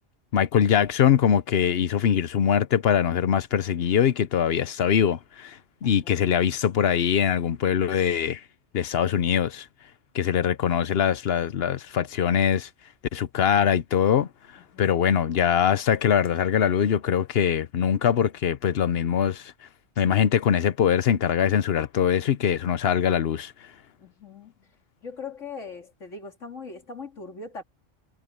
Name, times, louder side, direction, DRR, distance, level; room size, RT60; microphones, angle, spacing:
voice 1, 0.3-8.4 8.7-9.7 10.1-12.7 13.1-14.3 14.8-19.5 20.0-23.7, left 8 dB, 60° left, 0.9 m, -22 dB
voice 2, 5.8-6.2 14.7-15.0 24.0-24.7 25.0-27.6, left 4 dB, 80° left, 3.0 m, -40 dB
omnidirectional pair, 1.3 m